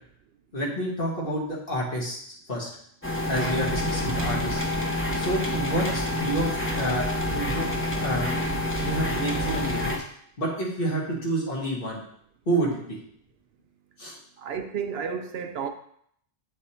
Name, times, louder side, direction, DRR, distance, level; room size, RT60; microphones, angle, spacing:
voice 1, 0.5-2.7 3.3-4.6 5.1-7.7 8.0-8.3 8.8-10.0 10.4-12.0 12.5-13.0 14.0-14.2, right 1 dB, 55° left, -4 dB, 1.9 m, -29 dB
sound 1, 3.0-10.0, left 1 dB, 15° left, 0.9 m, -27 dB
voice 2, 14.4-15.7, right 7 dB, 70° right, 6 dB, 0.8 m, -31 dB
7.9 x 3.4 x 4.3 m, 0.66 s
omnidirectional pair, 1.1 m